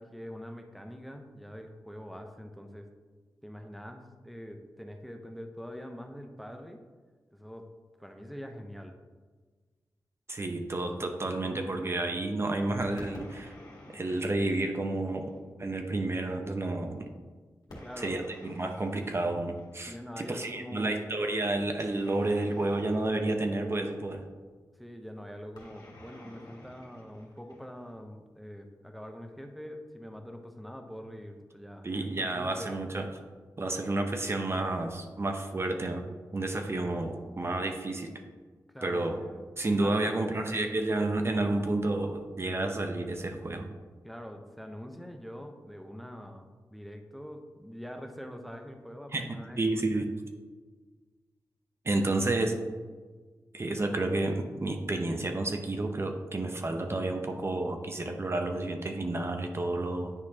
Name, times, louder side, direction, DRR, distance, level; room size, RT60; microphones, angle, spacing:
voice 1, 0.0-2.9 3.4-6.8 7.3-7.7 8.0-9.0 17.8-18.2 19.8-21.0 24.7-32.0 32.3-32.9 38.7-39.4 39.8-40.4 44.0-49.6 49.9-50.1, equal, ahead, 4 dB, 0.8 m, -44 dB
voice 2, 10.3-13.5 13.9-15.3 15.6-17.1 18.0-24.2 31.8-33.1 33.6-36.0 36.3-38.1 38.8-39.2 39.6-43.7 49.1-49.3 49.6-50.1 51.8-52.5 53.5-60.1, right 2 dB, 40° right, 4 dB, 0.7 m, -30 dB
sound 1, 12.8-15.5 17.7-20.1 21.7-24.2 25.5-28.0, left 1 dB, 80° left, 1.9 m, -50 dB
9.7 x 4.3 x 2.9 m, 1.4 s
cardioid pair, 45°, 7 cm